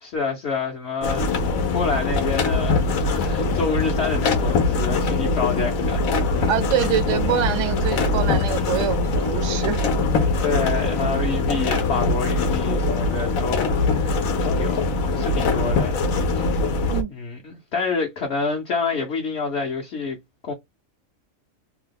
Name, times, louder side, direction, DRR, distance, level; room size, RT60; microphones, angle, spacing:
voice 1, 0.0-6.5 10.4-14.2 14.4-14.8 15.1-16.0 16.4-16.6 17.1-20.2 20.4-20.5, left 4 dB, 55° left, 1.0 m, -28 dB
sound 1, 1.0-17.0, left 3 dB, 80° left, 1.1 m, -22 dB
voice 2, 6.5-9.8 16.9-17.1, right 10 dB, 65° right, 0.9 m, -25 dB
2.8 x 2.2 x 3.4 m
omnidirectional pair, 1.4 m